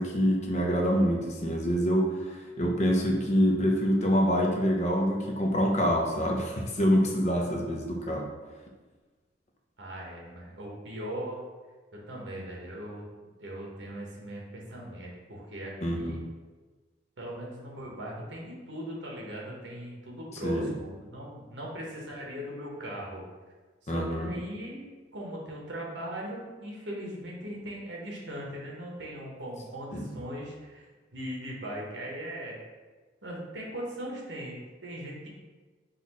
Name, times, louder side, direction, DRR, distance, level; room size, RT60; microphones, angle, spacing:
voice 1, 0.0-8.3 15.8-16.2 20.4-20.7 23.9-24.3 29.9-30.2, equal, 40° left, 0 dB, 0.6 m, -26 dB
voice 2, 9.8-11.4 12.1-13.0 13.4-16.2 17.2-23.2 23.8-24.9 25.1-30.8 31.1-32.6 33.2-35.3, right 1 dB, 70° right, -3 dB, 1.0 m, -39 dB
4.1 x 2.5 x 4.1 m, 1.3 s
head